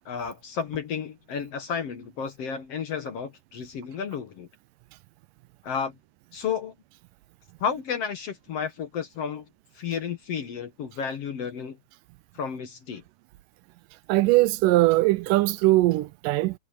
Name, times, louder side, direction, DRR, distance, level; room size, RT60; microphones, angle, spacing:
voice 1, 0.0-4.5 5.6-5.9 6.3-6.7 7.6-9.4 9.7-11.8 12.3-13.0, left 7 dB, 55° left, 1.9 m, -32 dB
voice 2, 14.1-16.5, right 18 dB, 80° right, 2.1 m, -21 dB
omnidirectional pair, 4.0 m